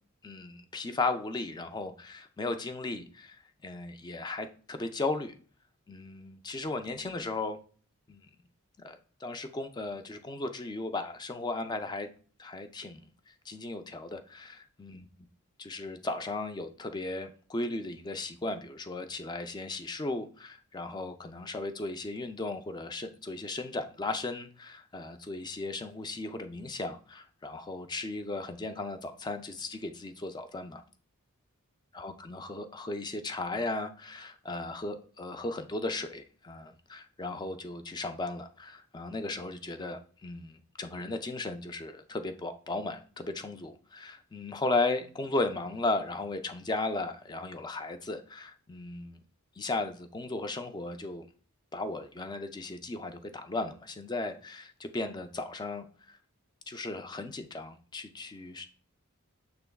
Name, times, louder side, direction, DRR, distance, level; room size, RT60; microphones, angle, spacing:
voice 1, 0.2-5.3 5.9-7.6 8.1-8.3 8.8-12.1 12.4-15.1 15.6-30.8 32.0-49.2 49.6-51.3 51.7-56.2 56.7-58.7, left 2 dB, 20° left, 0.4 m, -36 dB
6.8 x 3.3 x 2.2 m
head